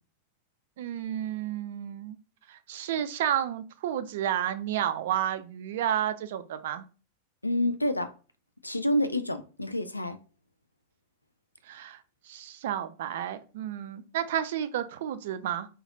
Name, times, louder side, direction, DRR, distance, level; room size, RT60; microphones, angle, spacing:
voice 1, 0.8-2.2 2.5-6.8 11.7-12.0 12.3-15.7, right 10 dB, 55° right, 0.4 m, -31 dB
voice 2, 7.4-8.1 8.6-10.2, left 1 dB, 85° left, 0.3 m, -28 dB
3.2 x 2.4 x 3.7 m
figure-of-eight pair, 90°, 0 cm